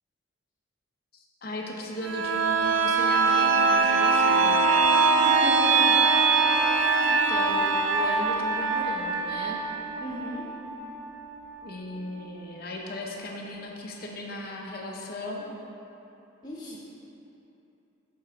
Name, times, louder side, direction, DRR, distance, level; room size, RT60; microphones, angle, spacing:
voice 1, 1.1-4.6 7.0-9.6 11.6-15.5 16.7-16.8, left 1 dB, 50° left, -1 dB, 0.7 m, -37 dB
sound 1, 2.0-11.6 12.0-12.1, right 4 dB, 75° right, 0.4 m, -23 dB
voice 2, 5.2-5.9 10.0-10.4 16.4-16.8, left 1 dB, 20° left, -9 dB, 1.4 m, -36 dB
7.3 x 3.8 x 4.3 m, 2.9 s
head